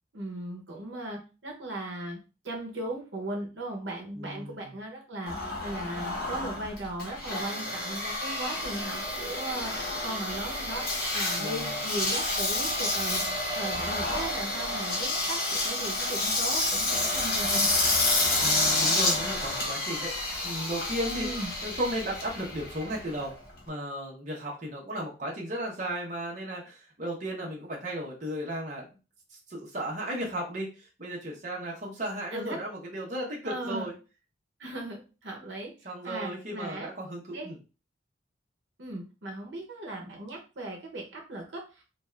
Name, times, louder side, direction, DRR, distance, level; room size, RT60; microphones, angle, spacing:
voice 1, 0.1-2.2 2.4-9.7 10.0-13.3 13.5-17.7 21.2-21.5 32.3-32.6 33.4-33.9 34.6-36.9 37.3-37.5 38.8-41.8, right 1 dB, 75° right, 0 dB, 0.8 m, -37 dB
voice 2, 4.1-4.8 11.4-12.0 18.4-20.1 20.4-21.3 21.6-23.3 23.7-29.0 29.5-33.9 35.8-37.6, equal, 40° right, -3 dB, 0.8 m, -35 dB
Engine, 5.3-23.7, left 2 dB, 55° left, 0.9 m, -29 dB
2.5 x 2.3 x 3.2 m, 0.32 s
head